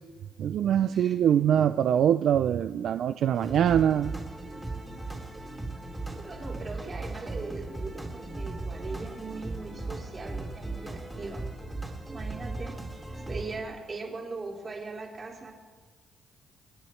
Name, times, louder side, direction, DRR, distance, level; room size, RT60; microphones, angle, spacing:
voice 1, 0.4-4.1, right 9 dB, 70° right, 11 dB, 0.3 m, -23 dB
voice 2, 0.9-1.3 6.2-11.4 12.0-12.7 13.3-15.5, right 3 dB, 40° right, -2 dB, 3.6 m, -40 dB
sound 1, 3.3-13.6, right 2 dB, 10° right, 2.8 m, -37 dB
26.5 x 9.1 x 3.2 m, 1.4 s
cardioid pair, 90°, 0 cm